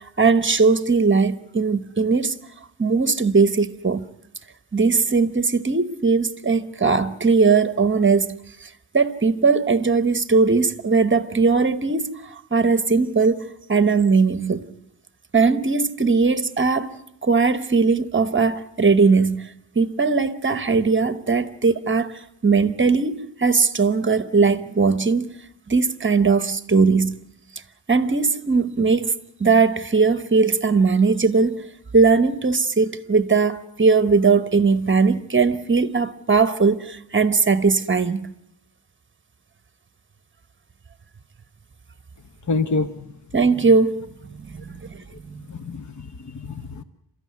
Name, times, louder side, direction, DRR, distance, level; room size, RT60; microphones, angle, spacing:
voice 1, 0.2-2.3 2.8-4.1 4.7-8.7 8.9-14.7 15.3-22.1 22.4-25.4 25.7-27.3 27.9-29.1 29.4-31.7 31.9-38.3 43.3-45.0 45.3-45.5, right 4 dB, 30° right, 1.1 m, -19 dB
voice 2, 42.5-43.0 45.5-46.8, left 3 dB, 50° left, 1.1 m, -27 dB
29.0 x 14.0 x 9.5 m
wide cardioid pair, 80°, 37 cm